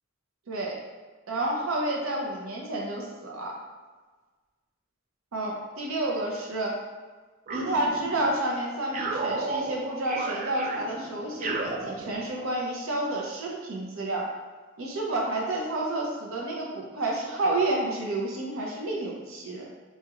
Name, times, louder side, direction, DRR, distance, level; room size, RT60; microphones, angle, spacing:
voice 1, 0.5-0.8 1.3-3.5 5.3-6.8 7.5-14.3 14.8-19.7, right 2 dB, 90° right, -2 dB, 0.6 m, -30 dB
sound 1, 7.5-8.4 8.9-12.6, right 3 dB, 40° right, 0.3 m, -33 dB
4.3 x 2.3 x 2.9 m, 1.4 s
head